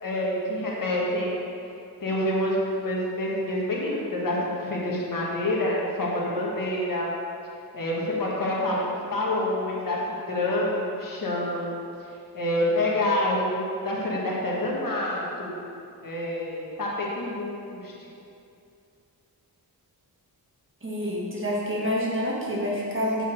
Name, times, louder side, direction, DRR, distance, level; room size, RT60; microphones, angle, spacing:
voice 1, 0.0-1.4 2.0-7.1 7.7-11.7 12.3-15.6 16.0-17.9, left 1 dB, 55° left, -4 dB, 1.6 m, -27 dB
voice 2, 20.8-23.2, equal, 30° right, -5 dB, 1.8 m, -27 dB
7.0 x 5.5 x 6.3 m, 2.6 s
wide cardioid pair, 135°, 39 cm